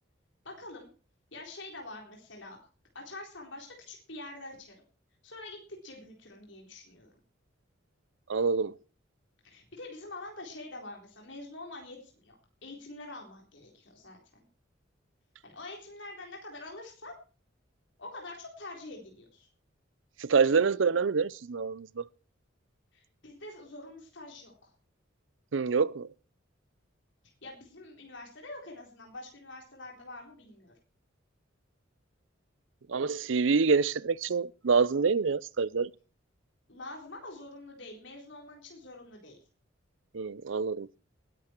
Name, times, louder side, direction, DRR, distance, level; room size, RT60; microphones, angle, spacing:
voice 1, 0.4-0.9 1.3-2.6 2.9-4.8 5.2-7.1 9.4-12.3 12.6-14.2 15.4-17.1 18.0-19.5 22.9-24.7 27.4-30.7 36.7-39.4, left 2 dB, 65° left, 4.0 m, -45 dB
voice 2, 8.3-8.7 20.2-22.0 25.5-26.1 32.9-35.9 40.1-40.9, right 5 dB, 70° right, 0.5 m, -26 dB
19.5 x 9.8 x 4.5 m
head